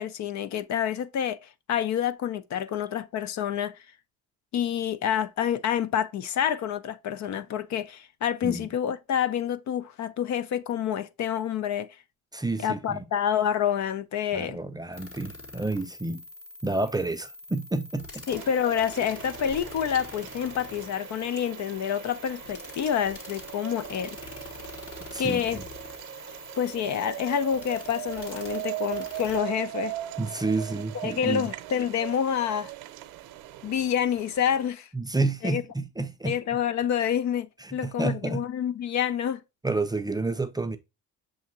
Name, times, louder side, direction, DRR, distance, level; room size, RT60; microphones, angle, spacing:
voice 1, 0.0-3.8 4.5-11.9 12.6-14.6 18.3-24.2 25.2-25.6 26.6-29.9 31.0-32.7 33.6-34.9 35.4-35.6 36.2-39.4, left 9 dB, 55° left, 0.6 m, -28 dB
voice 2, 12.3-13.0 14.3-16.2 16.6-18.3 25.1-25.7 30.2-31.5 34.9-36.4 37.6-38.4 39.6-40.8, right 2 dB, 10° right, 0.5 m, -30 dB
sound 1, 14.9-29.4, left 2 dB, 40° left, 1.5 m, -44 dB
sound 2, 18.3-34.7, right 16 dB, 80° right, 0.7 m, -39 dB
6.9 x 2.7 x 2.7 m
supercardioid pair, 85°, 34 cm